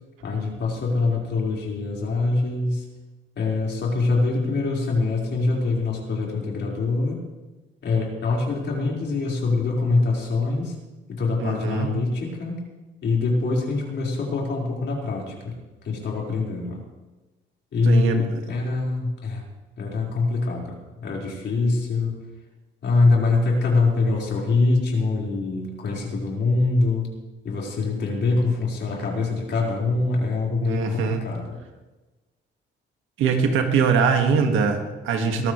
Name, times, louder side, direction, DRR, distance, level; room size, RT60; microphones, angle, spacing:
voice 1, 0.2-2.8 3.4-7.2 7.8-10.7 11.1-12.6 13.0-15.5 15.8-16.8 17.7-19.4 19.8-22.1 22.8-27.1 27.4-31.5, left 3 dB, 65° left, -3 dB, 4.9 m, -24 dB
voice 2, 11.4-11.9 17.9-18.4 30.6-31.2 33.2-35.5, right 5 dB, 85° right, 4 dB, 2.0 m, -22 dB
21.5 x 14.5 x 3.3 m, 1.2 s
cardioid pair, 90°, 20 cm